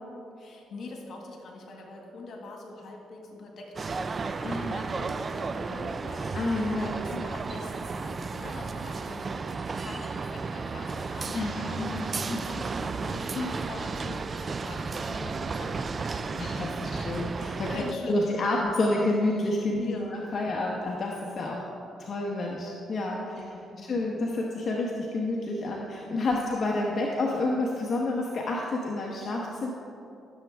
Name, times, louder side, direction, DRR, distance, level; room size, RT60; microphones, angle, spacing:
voice 1, 0.4-6.5 6.8-17.1 17.6-18.6 19.8-20.7 23.3-24.0 26.4-26.6, left 2 dB, 60° left, 0 dB, 1.7 m, -43 dB
sound 1, 3.7-17.9, right 4 dB, 35° right, 0.3 m, -33 dB
voice 2, 4.4-4.8 6.3-7.2 11.3-12.4 13.3-13.5 16.3-17.7 18.1-21.7 22.0-23.4 23.9-29.7, left 2 dB, 45° left, -2 dB, 1.0 m, -29 dB
14.0 x 7.3 x 3.5 m, 2.7 s
cardioid pair, 90°, 0 cm